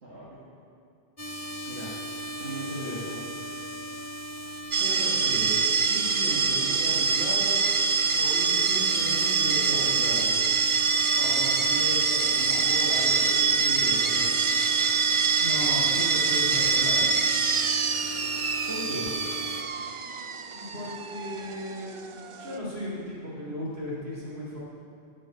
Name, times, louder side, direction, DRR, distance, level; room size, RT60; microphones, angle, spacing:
voice 1, 0.0-0.4 1.7-1.9 2.4-3.2 4.8-7.6 8.1-10.3 11.2-14.2 18.7-19.1, right 1 dB, 90° right, -9 dB, 2.4 m, -36 dB
sound 1, 1.2-19.6, equal, 15° left, 0.8 m, -38 dB
sound 2, 4.7-22.6, right 5 dB, 45° right, 0.4 m, -25 dB
voice 2, 15.4-17.1 20.5-24.6, left 1 dB, 70° right, -5 dB, 3.7 m, -36 dB
12.0 x 6.4 x 9.1 m, 2.4 s
omnidirectional pair, 1.1 m